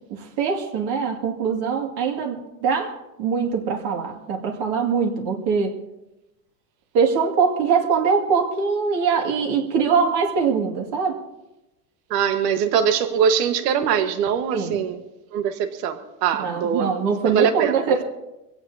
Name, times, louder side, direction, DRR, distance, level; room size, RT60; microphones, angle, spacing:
voice 1, 0.1-5.8 6.9-11.2 14.5-14.8 16.4-18.0, right 6 dB, 55° right, 1 dB, 2.3 m, -22 dB
voice 2, 12.1-15.0 15.3-16.9 17.3-18.0, right 7 dB, 85° right, 8 dB, 1.5 m, -22 dB
23.0 x 16.5 x 2.8 m, 0.97 s
supercardioid pair, 135°, 48 cm